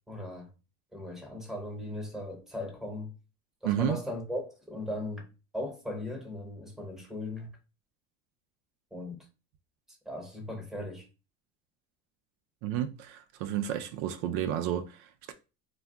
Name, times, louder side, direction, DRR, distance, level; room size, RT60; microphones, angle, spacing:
voice 1, 0.1-0.5 0.9-3.1 3.6-5.3 5.5-7.5 8.9-9.3 10.0-11.1, left 1 dB, ahead, 0.8 m, -38 dB
voice 2, 3.6-4.0 12.6-15.3, right 10 dB, 75° right, 0.5 m, -31 dB
2.3 x 2.2 x 3.6 m
supercardioid pair, 105°, 33 cm